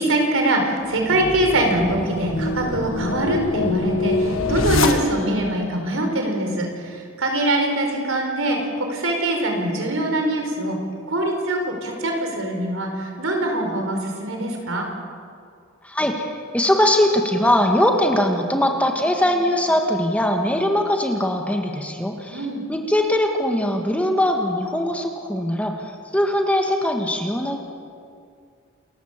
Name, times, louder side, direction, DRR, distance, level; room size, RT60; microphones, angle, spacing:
voice 1, 0.0-10.8 11.1-14.9 22.3-22.6, right 1 dB, 70° right, 2 dB, 4.7 m, -23 dB
sound 1, 0.9-5.5, left 3 dB, 70° left, 1.6 m, -25 dB
voice 2, 15.8-27.6, left 1 dB, 5° left, 3 dB, 1.7 m, -21 dB
28.5 x 15.0 x 7.4 m, 2.3 s
head